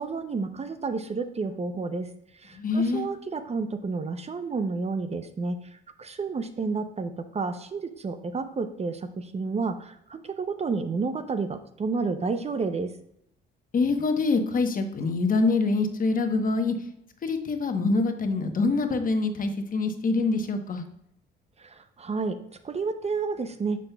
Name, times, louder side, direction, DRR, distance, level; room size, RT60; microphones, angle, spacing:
voice 1, 0.0-12.9 21.6-22.4 22.6-23.8, right 4 dB, 30° right, 10 dB, 0.5 m, -31 dB
voice 2, 2.5-3.1 13.7-16.7 17.2-20.8, left 3 dB, 45° left, 6 dB, 1.0 m, -25 dB
7.3 x 6.2 x 2.2 m, 0.74 s
cardioid pair, 90°, 20 cm